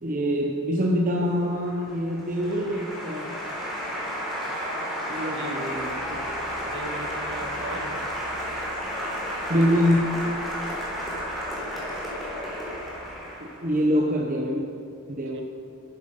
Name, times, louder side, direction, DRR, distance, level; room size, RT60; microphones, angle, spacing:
voice 1, 0.0-3.3 5.1-6.3 9.5-10.1 13.4-14.6 15.1-15.4, equal, 40° right, -1 dB, 1.0 m, -25 dB
Applause, 1.3-13.8, equal, ahead, 4.3 m, -32 dB
voice 2, 5.3-5.7 6.6-8.0 15.3-15.4, right 2 dB, 55° right, 3 dB, 1.6 m, -38 dB
sound 1, 5.7-13.2, equal, 50° left, 4.3 m, -49 dB
13.5 x 12.0 x 5.6 m, 2.4 s
head